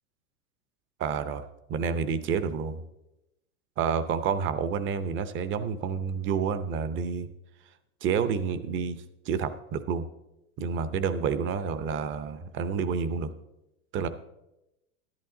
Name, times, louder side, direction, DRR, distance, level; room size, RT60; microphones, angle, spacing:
voice 1, 1.0-2.8 3.8-7.3 8.0-10.0 10.6-13.3 13.9-14.1, right 6 dB, 30° right, 12 dB, 0.7 m, -29 dB
12.5 x 10.5 x 3.8 m, 0.91 s
hypercardioid pair, 125°, 43 cm